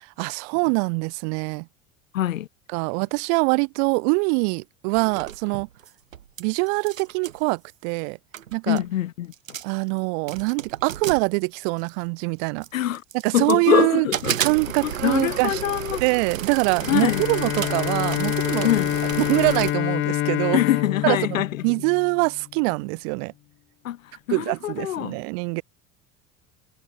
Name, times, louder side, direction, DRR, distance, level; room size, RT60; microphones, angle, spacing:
voice 1, 0.0-1.7 2.7-5.7 6.4-8.2 8.5-8.8 9.6-12.7 13.2-14.1 14.4-15.6 16.0-18.7 19.2-20.6 21.0-23.3 24.3-25.6, right 40 dB or more, 55° right, 0.6 m, -24 dB
voice 2, 2.1-2.5 8.7-9.3 12.7-13.0 13.3-14.4 14.8-16.0 16.9-17.2 18.6-18.9 20.5-21.6 23.8-24.0 24.3-25.2, left 12 dB, 75° left, 1.4 m, -24 dB
sound 1, 4.9-6.4 6.7-7.4 8.1-8.2 8.3-8.9 9.3-9.8 10.3-12.0 12.6-13.7 14.1-19.7, right 9 dB, 80° right, 2.8 m, -32 dB
Bowed string instrument, 16.8-22.5, left 14 dB, 30° left, 0.6 m, -27 dB
figure-of-eight pair, 70°, 40 cm